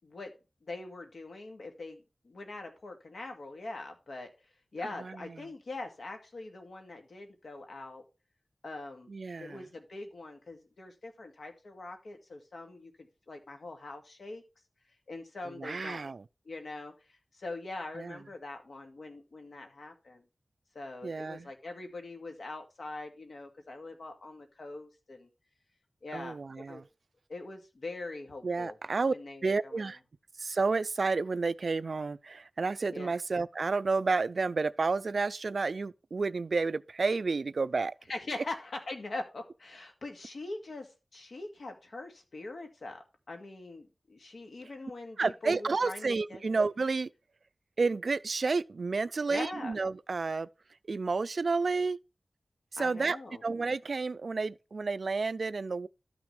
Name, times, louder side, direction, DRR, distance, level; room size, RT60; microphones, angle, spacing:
voice 1, 0.6-4.3 4.7-8.0 8.6-9.1 9.4-14.4 15.1-16.1 16.5-20.2 20.7-25.3 26.0-26.8 27.3-28.8 29.1-29.9 32.9-33.1 38.1-46.6 49.3-49.8 52.8-53.4, left 2 dB, 85° left, 2.2 m, -43 dB
voice 2, 5.0-5.4 9.1-9.6 15.5-16.2 18.0-18.2 21.0-21.5 26.1-26.8 28.4-29.1 29.4-30.0 30.4-37.9 45.2-47.1 47.8-50.5 50.9-52.0 52.7-53.2 53.4-55.9, right 4 dB, 70° right, 0.4 m, -31 dB
12.5 x 6.1 x 3.3 m
wide cardioid pair, 90°, 0 cm